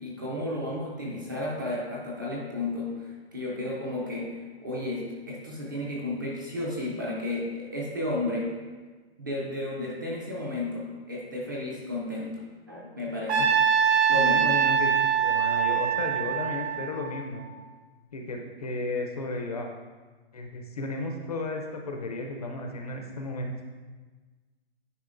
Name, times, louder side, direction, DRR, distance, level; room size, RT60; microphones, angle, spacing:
voice 1, 0.0-8.6 9.2-12.4 12.7-13.4 14.1-14.5, left 2 dB, 20° right, -3 dB, 0.5 m, -33 dB
Trumpet, 13.3-17.5, right 7 dB, 80° right, 0.9 m, -24 dB
voice 2, 14.1-14.9 15.2-17.5 18.1-19.7 20.3-23.5, left 2 dB, 40° left, 3 dB, 0.5 m, -34 dB
9.6 x 4.2 x 2.5 m, 1.3 s
hypercardioid pair, 175°, 32 cm